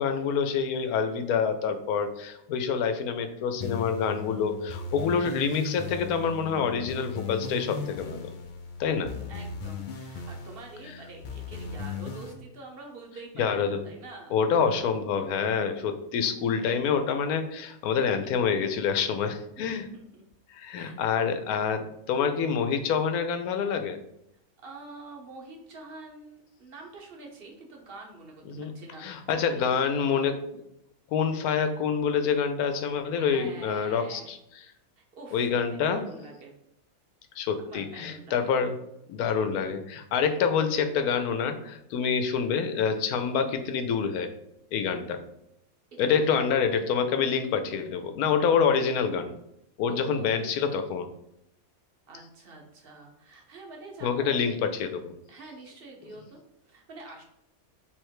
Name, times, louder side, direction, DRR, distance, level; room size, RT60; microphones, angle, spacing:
voice 1, 0.0-8.3 8.8-9.1 13.4-13.8 14.3-19.9 20.5-24.0 28.5-28.7 29.0-30.4 31.1-34.4 35.3-36.0 37.4-38.7 39.1-44.3 44.7-45.2 46.0-49.3 49.8-51.1 54.0-55.1, left 6 dB, 90° left, 8 dB, 1.1 m, -27 dB
sound 1, 3.6-12.3, left 5 dB, 75° left, 0.4 m, -38 dB
voice 2, 9.3-14.4 19.6-20.2 20.7-21.0 24.6-30.3 33.2-34.4 35.0-36.5 37.7-38.4 45.9-46.1 46.4-46.5 49.9-50.7 52.1-54.4 55.3-57.2, right 3 dB, 45° right, 1 dB, 1.0 m, -46 dB
3.6 x 3.2 x 4.6 m, 0.80 s
omnidirectional pair, 1.5 m